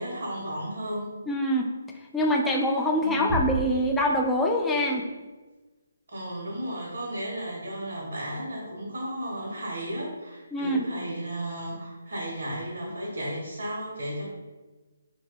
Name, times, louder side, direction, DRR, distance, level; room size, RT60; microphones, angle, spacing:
voice 1, 0.0-1.1 3.0-3.5 6.1-14.3, right 1 dB, 70° right, -4 dB, 0.8 m, -34 dB
voice 2, 1.3-1.7 2.1-5.1 10.5-10.9, equal, 5° left, 0 dB, 0.3 m, -24 dB
sound 1, 3.3-4.9, left 1 dB, 25° left, 0.8 m, -33 dB
2.6 x 2.2 x 3.6 m, 1.2 s
hypercardioid pair, 150°, 0 cm